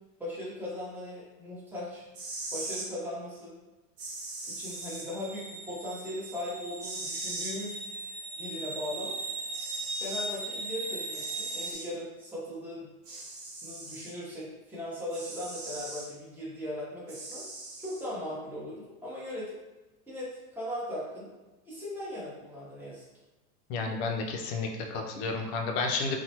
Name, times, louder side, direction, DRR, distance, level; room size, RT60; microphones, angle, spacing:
voice 1, 0.2-2.0 2.5-3.5 4.6-7.9 8.4-9.1 10.0-12.9 13.6-17.4 17.8-19.6 20.1-21.3 21.6-23.0, left 1 dB, 5° right, -8 dB, 0.9 m, -38 dB
sound 1, 2.0-2.9 4.0-5.1 6.8-7.6 9.0-9.1 9.5-10.3 11.1-11.9 13.0-14.1 15.1-16.1 17.1-18.1, right 2 dB, 85° right, 0.9 m, -40 dB
sound 2, 4.7-11.7, right 2 dB, 30° right, 0.5 m, -38 dB
voice 2, 23.7-26.2, left 4 dB, 45° left, 2 dB, 0.5 m, -31 dB
2.9 x 2.2 x 2.8 m, 1.1 s
hypercardioid pair, 105°, 47 cm